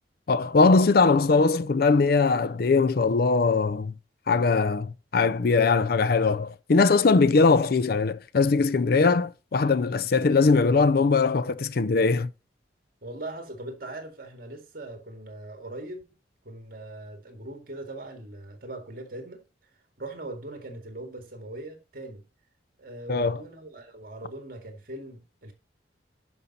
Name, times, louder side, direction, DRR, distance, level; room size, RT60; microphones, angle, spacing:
voice 1, 0.3-3.9 4.3-12.3 23.1-23.4, left 4 dB, 55° left, 0.5 m, -21 dB
voice 2, 13.0-16.0 16.4-19.4 20.0-22.2 22.8-25.5, right 2 dB, 50° right, 2.0 m, -40 dB
11.0 x 5.5 x 4.1 m
head